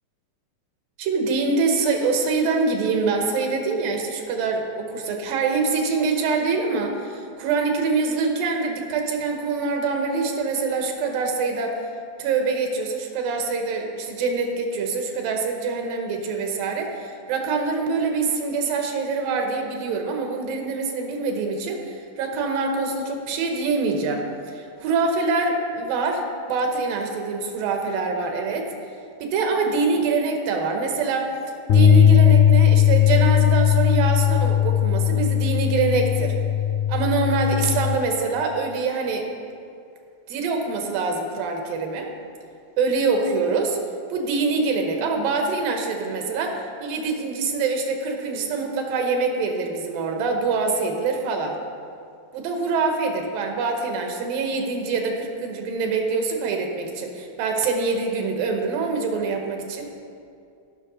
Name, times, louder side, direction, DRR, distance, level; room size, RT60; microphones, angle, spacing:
voice 1, 1.0-11.8 12.2-28.7 29.2-31.3 31.7-36.3 36.9-39.3 40.3-42.1 42.8-43.8 44.1-51.6 52.3-59.9, right 4 dB, 90° right, 3 dB, 2.9 m, -25 dB
sound 1, 31.7-37.9, left 9 dB, 75° left, 1.9 m, -18 dB
16.0 x 6.1 x 5.2 m, 2.4 s
omnidirectional pair, 4.0 m